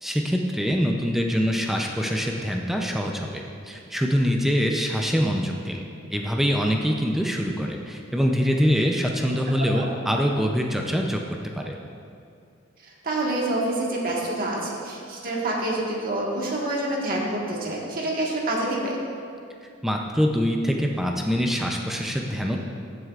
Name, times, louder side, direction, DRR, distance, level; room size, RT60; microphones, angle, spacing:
voice 1, 0.0-5.8 6.1-11.2 11.6-11.8 19.8-22.6, equal, ahead, 1 dB, 0.5 m, -24 dB
voice 2, 12.8-19.0, right 1 dB, 45° right, -3 dB, 1.5 m, -27 dB
14.5 x 7.8 x 2.4 m, 2.4 s
head